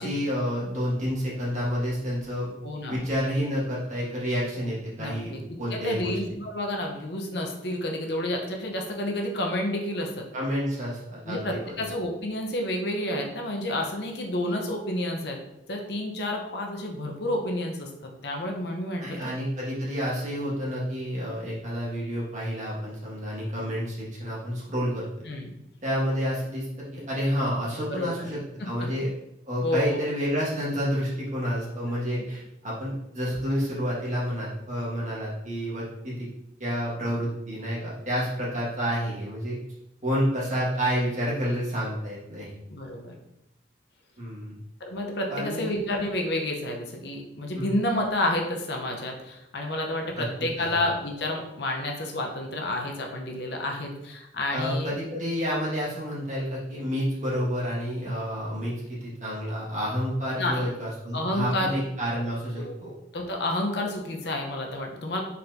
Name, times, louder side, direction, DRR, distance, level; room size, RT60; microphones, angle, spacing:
voice 1, 0.0-2.5 2.9-6.4 10.3-11.7 19.0-25.0 25.8-26.7 26.9-28.4 28.6-29.1 29.4-36.3 36.6-39.6 40.0-42.5 44.2-44.6 45.3-45.8 47.5-47.7 50.2-50.3 50.6-50.8 54.5-62.9, equal, 40° right, -7 dB, 1.5 m, -29 dB
voice 2, 2.6-3.0 5.0-5.4 5.7-10.3 11.2-15.4 15.7-17.9 18.2-19.3 25.3-25.5 27.9-28.3 28.6-28.9 29.6-30.0 32.1-32.2 42.7-43.2 44.8-54.9 60.4-60.7 61.1-61.8 62.6-65.2, left 1 dB, 60° left, 1 dB, 0.7 m, -30 dB
4.2 x 4.1 x 2.6 m, 0.86 s
head